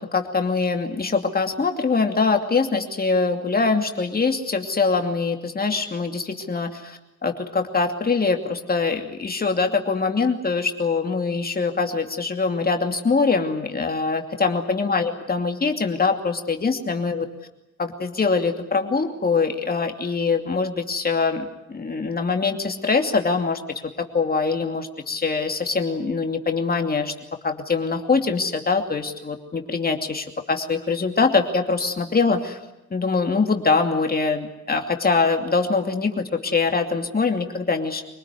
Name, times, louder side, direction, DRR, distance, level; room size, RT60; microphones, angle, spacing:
voice 1, 0.1-17.3 17.8-23.6 24.1-27.1 27.4-32.6 32.9-38.0, left 4 dB, 30° left, 5 dB, 2.7 m, -23 dB
25.5 x 19.0 x 9.7 m, 0.92 s
cardioid pair, 90°, 30 cm